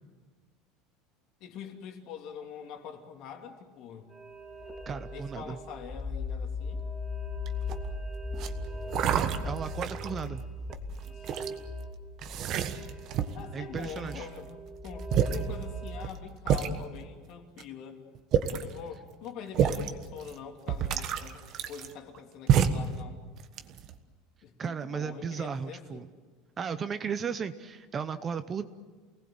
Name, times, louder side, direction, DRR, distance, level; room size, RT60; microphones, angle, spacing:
voice 1, 1.4-4.1 5.1-6.8 11.0-11.4 13.3-18.0 18.5-23.2 24.4-26.1, left 7 dB, 45° left, 3 dB, 2.8 m, -44 dB
sound 1, 4.1-16.1, left 1 dB, 5° right, 2.5 m, -38 dB
voice 2, 4.9-5.6 9.1-10.4 13.5-14.3 24.6-26.1 26.6-28.7, right 6 dB, 20° right, 11 dB, 0.7 m, -35 dB
sound 2, 7.5-7.9 8.4-8.5 8.9-10.2 10.7-11.5 12.2-13.5 13.8-14.4 14.8-14.9 15.1-15.4 16.0-16.1 16.5-16.7 17.6-17.7 18.1-18.7 19.5-19.9 20.3-20.4 20.7-22.2 22.5-22.9 23.4-24.0, right 8 dB, 40° right, 1.3 m, -28 dB
29.0 x 19.0 x 7.8 m, 1.4 s
cardioid pair, 165°, 0 cm